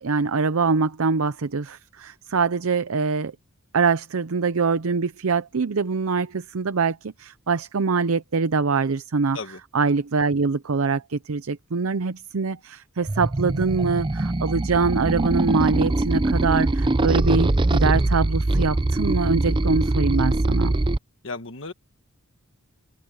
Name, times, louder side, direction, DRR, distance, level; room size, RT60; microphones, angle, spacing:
voice 1, 0.0-3.3 3.7-9.4 9.7-20.7, right 4 dB, 65° right, 0.6 m, -24 dB
sound 1, 13.1-21.0, right 2 dB, 20° right, 0.5 m, -22 dB
voice 2, 21.2-21.7, left 3 dB, 60° left, 1.4 m, -34 dB
head